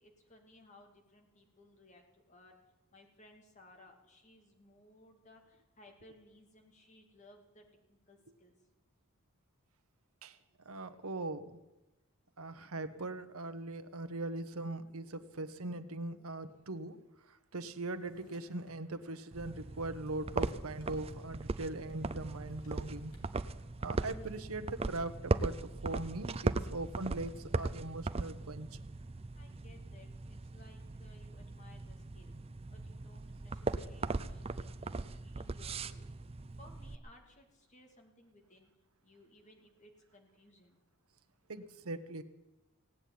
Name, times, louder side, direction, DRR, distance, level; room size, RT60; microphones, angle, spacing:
voice 1, 0.0-2.6 2.9-8.7 29.3-32.4 32.7-34.7 35.1-36.2 36.5-38.7 39.0-40.8, left 1 dB, 35° left, 3 dB, 2.7 m, -61 dB
voice 2, 10.6-11.6 12.4-17.0 17.3-23.1 23.8-25.5 25.8-28.7 41.5-42.2, right 2 dB, 80° right, 10 dB, 1.1 m, -40 dB
Drawer open or close, 17.8-18.9 19.4-20.9 21.2-21.3 21.5-23.3, left 1 dB, 75° left, 3.0 m, -65 dB
sound 1, 19.3-37.0, right 3 dB, 25° right, 0.5 m, -39 dB
17.5 x 8.6 x 9.4 m, 1.1 s
head